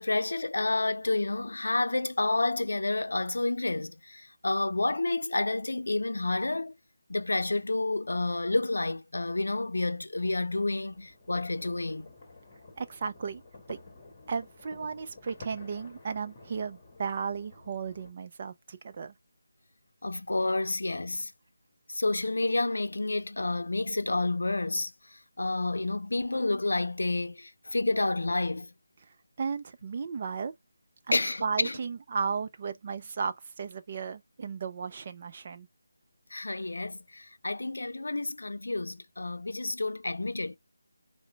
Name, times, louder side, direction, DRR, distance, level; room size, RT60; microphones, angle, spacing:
voice 1, 0.0-6.7 7.1-12.1 20.0-21.3 21.9-28.7 31.1-31.8 36.3-40.6, left 2 dB, 65° left, 0.6 m, -30 dB
sound 1, 10.5-18.1, left 3 dB, 25° left, 1.4 m, -51 dB
voice 2, 12.8-13.4 13.7-13.8 14.3-19.1 29.4-30.5 31.1-35.7, right 5 dB, 35° right, 0.5 m, -35 dB
4.8 x 2.2 x 4.3 m
figure-of-eight pair, 160°, 0 cm